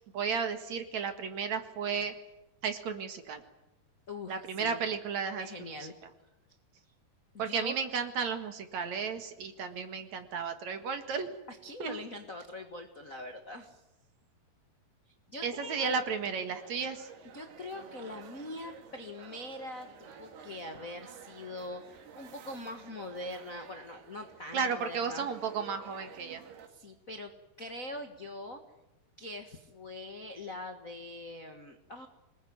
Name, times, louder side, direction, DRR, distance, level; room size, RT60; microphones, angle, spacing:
voice 1, 0.1-2.1 2.6-3.4 4.3-5.5 7.4-11.3 11.8-12.0 15.4-17.1 24.5-26.4, right 6 dB, 55° right, 8 dB, 2.6 m, -33 dB
voice 2, 4.1-4.8 5.4-6.0 7.3-7.7 11.5-13.8 15.3-16.0 17.3-25.3 26.7-27.3 27.6-28.6 29.2-32.1, left 1 dB, 60° left, 6 dB, 0.8 m, -43 dB
sound 1, 16.5-26.7, right 7 dB, 85° right, 4.2 m, -51 dB
26.0 x 20.5 x 9.4 m, 0.91 s
omnidirectional pair, 4.4 m